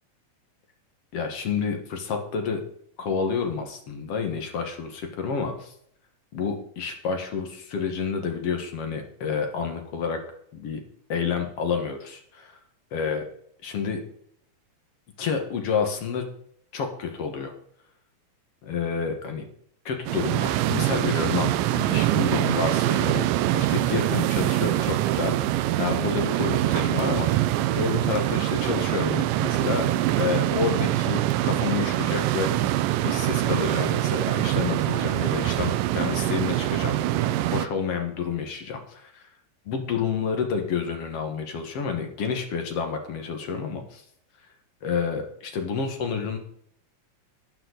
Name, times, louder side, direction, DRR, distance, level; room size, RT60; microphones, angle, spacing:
voice 1, 1.1-2.6 3.0-5.7 6.3-10.2 10.5-10.8 11.1-12.6 12.9-13.3 13.6-14.0 15.2-16.3 16.7-17.5 18.6-19.4 19.9-23.3 23.5-27.4 27.7-29.9 30.2-32.8 33.0-39.2 39.7-44.0 44.8-46.4, left 6 dB, 55° left, 5 dB, 2.1 m, -29 dB
sound 1, 20.1-37.7, right 14 dB, 80° right, 2.2 m, -24 dB
13.0 x 9.0 x 4.0 m, 0.67 s
omnidirectional pair, 4.0 m